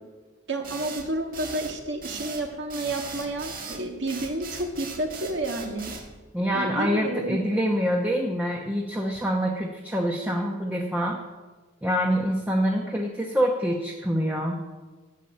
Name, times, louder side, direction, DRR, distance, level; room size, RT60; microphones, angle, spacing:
voice 1, 0.5-5.9 6.5-7.4, right 1 dB, 60° right, 3 dB, 2.0 m, -30 dB
sound 1, 0.6-6.1, right 4 dB, 45° right, 1.8 m, -38 dB
voice 2, 6.3-11.2 11.8-14.6, equal, 10° right, -1 dB, 1.0 m, -26 dB
12.5 x 7.0 x 8.9 m, 1.3 s
head